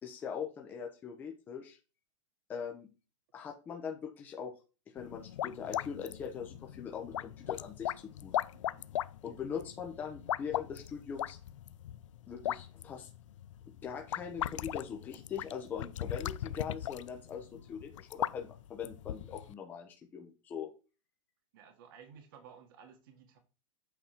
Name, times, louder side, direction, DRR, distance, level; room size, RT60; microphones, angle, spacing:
voice 1, 0.0-1.8 2.5-2.9 3.3-4.5 4.9-7.9 8.2-8.4 9.2-11.4 12.3-13.1 13.8-20.7, left 7 dB, 10° left, 0.8 m, -41 dB
sound 1, 5.0-19.5, left 12 dB, 75° left, 0.5 m, -39 dB
voice 2, 8.5-8.9 21.5-23.4, right 7 dB, 45° right, 1.6 m, -55 dB
8.3 x 4.1 x 6.0 m
supercardioid pair, 175°, 16 cm